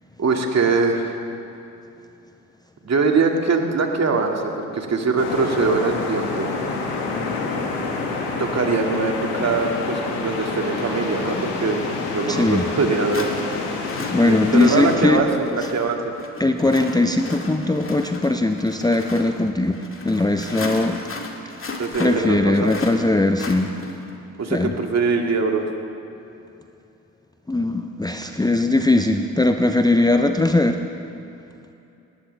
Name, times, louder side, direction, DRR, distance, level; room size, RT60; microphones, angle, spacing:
voice 1, 0.2-1.2 2.8-6.5 8.4-13.3 14.2-16.0 21.8-22.7 24.4-25.7, right 4 dB, 40° right, 2 dB, 2.4 m, -22 dB
sound 1, 5.2-15.0, left 3 dB, 75° left, 2.3 m, -27 dB
sound 2, 12.2-12.3 13.1-24.2, left 3 dB, 30° left, 2.2 m, -35 dB
voice 2, 12.3-12.7 14.1-15.2 16.4-21.0 22.0-23.7 24.5-24.7 27.5-30.8, left 2 dB, 10° left, 6 dB, 0.8 m, -19 dB
20.0 x 19.0 x 3.5 m, 2.8 s
hypercardioid pair, 50°, 41 cm